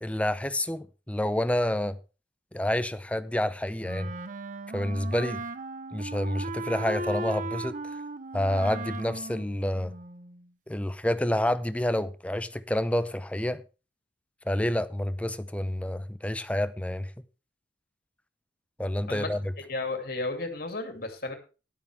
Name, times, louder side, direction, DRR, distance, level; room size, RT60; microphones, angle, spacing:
voice 1, 0.0-2.0 2.5-4.1 4.7-5.4 5.9-7.8 8.3-9.9 10.7-13.6 14.5-17.1 18.8-19.5, left 1 dB, 5° left, 0.6 m, -28 dB
Wind instrument woodwind instrument, 3.8-10.4, right 2 dB, 45° right, 0.7 m, -37 dB
voice 2, 19.7-21.3, left 2 dB, 55° left, 2.6 m, -33 dB
13.0 x 11.5 x 3.4 m
head